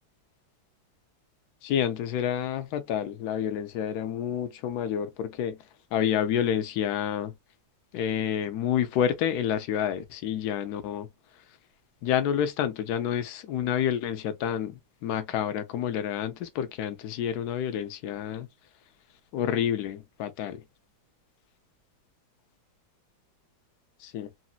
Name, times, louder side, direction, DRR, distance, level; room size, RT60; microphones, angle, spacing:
voice 1, 1.6-5.6 5.9-7.3 7.9-11.1 12.0-18.5 19.3-20.6 24.0-24.3, left 9 dB, 70° left, 1.0 m, -29 dB
4.0 x 2.0 x 2.2 m
omnidirectional pair, 2.1 m